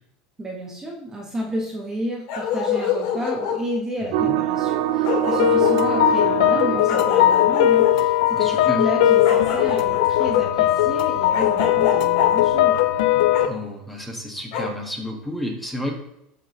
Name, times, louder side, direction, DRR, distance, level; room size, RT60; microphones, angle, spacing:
voice 1, 0.4-12.8, equal, 15° right, -1 dB, 1.5 m, -31 dB
Bark, 2.3-3.6 4.7-4.8 5.0-5.8 6.9-7.9 9.2-10.3 11.3-12.3 13.3-13.5 14.5-14.7, left 7 dB, 60° left, 2.5 m, -25 dB
sound 1, 4.1-8.0, right 12 dB, 65° right, 0.6 m, -25 dB
sound 2, 5.4-13.5, left 12 dB, 75° left, 0.6 m, -19 dB
voice 2, 8.3-8.9 13.4-15.9, left 1 dB, 5° left, 0 dB, 1.8 m, -31 dB
13.0 x 5.0 x 3.3 m, 0.82 s
supercardioid pair, 135°, 3 cm